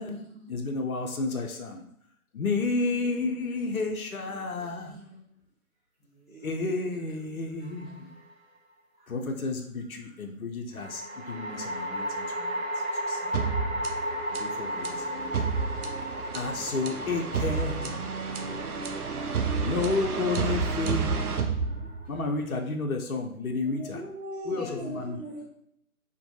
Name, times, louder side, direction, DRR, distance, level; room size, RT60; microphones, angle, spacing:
voice 1, 0.0-1.8 2.3-5.0 6.4-8.2 9.1-13.4 14.3-15.7 16.3-18.2 19.6-21.4 22.1-24.0 24.5-25.2, left 3 dB, 70° left, 3 dB, 0.5 m, -32 dB
voice 2, 2.8-3.1 3.8-4.7 6.3-7.0 20.8-21.3 23.5-25.4, equal, 10° left, -23 dB, 0.9 m, -42 dB
voice 3, 3.5-3.8 4.6-5.4 6.0-6.5 9.0-9.1 10.0-10.1 12.9-13.8 15.3-15.4 21.6-22.1 24.5-25.2, equal, 20° right, -14 dB, 1.2 m, -52 dB
sound 1, 7.6-8.3 10.7-22.1, equal, 50° right, 0.8 m, -35 dB
sound 2, 13.3-22.3, right 5 dB, 80° right, 0.5 m, -31 dB
2.6 x 2.5 x 2.3 m, 0.70 s
figure-of-eight pair, 155°, 44 cm